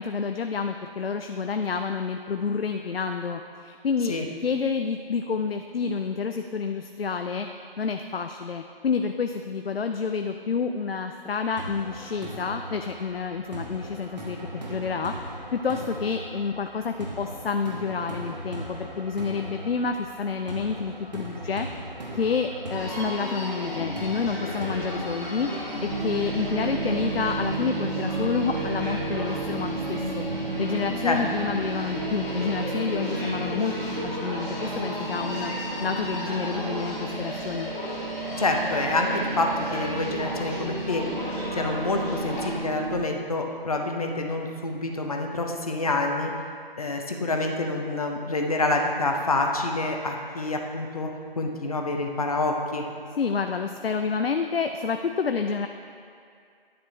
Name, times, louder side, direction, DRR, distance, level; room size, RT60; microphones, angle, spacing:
voice 1, 0.0-4.2 4.4-7.5 7.8-15.1 15.5-21.7 22.1-25.5 25.8-33.7 34.0-35.5 35.8-37.7 53.2-55.7, left 5 dB, 80° left, 6 dB, 0.5 m, -29 dB
sound 1, 11.6-26.5, right 1 dB, 45° right, 1.1 m, -39 dB
Human voice, 22.7-42.5, left 1 dB, 15° left, 1.3 m, -33 dB
sound 2, 25.9-43.1, right 4 dB, 80° right, 0.5 m, -34 dB
voice 2, 38.4-41.1 41.5-46.3 46.8-51.1 51.4-52.9, left 2 dB, 40° left, 2 dB, 0.7 m, -27 dB
10.5 x 6.0 x 3.1 m, 2.3 s
figure-of-eight pair, 160°, 29 cm